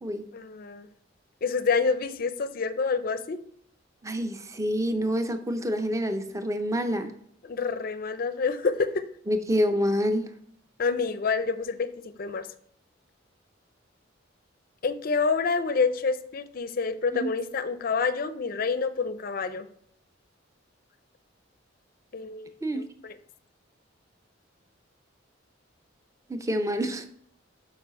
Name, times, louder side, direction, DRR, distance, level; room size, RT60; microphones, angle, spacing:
voice 1, 0.3-0.9 1.4-3.4 7.4-9.0 10.8-11.9 12.2-12.5 14.8-19.7 22.1-23.2, left 4 dB, 45° left, 11 dB, 0.4 m, -28 dB
voice 2, 4.0-7.1 9.3-10.2 17.1-17.3 22.6-22.8 26.3-27.0, equal, 15° right, 8 dB, 0.5 m, -27 dB
7.1 x 4.8 x 4.2 m, 0.66 s
head